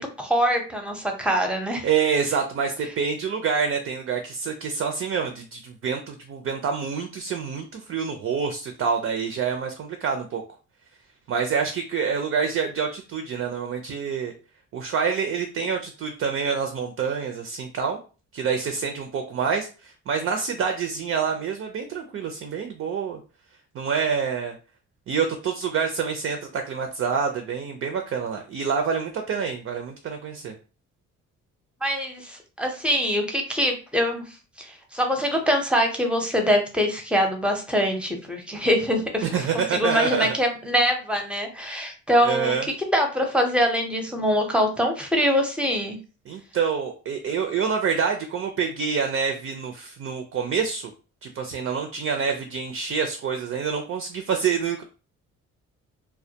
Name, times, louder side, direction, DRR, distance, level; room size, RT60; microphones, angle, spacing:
voice 1, 0.0-1.9 31.8-42.6 42.9-46.0, equal, 5° right, 3 dB, 0.6 m, -24 dB
voice 2, 1.8-10.4 11.3-14.3 14.7-18.0 18.3-23.2 23.7-24.5 25.1-30.5 39.2-40.3 42.2-42.6 46.3-50.9 51.2-54.8, right 6 dB, 50° right, 5 dB, 0.5 m, -27 dB
2.2 x 2.2 x 2.7 m, 0.35 s
cardioid pair, 90°, 30 cm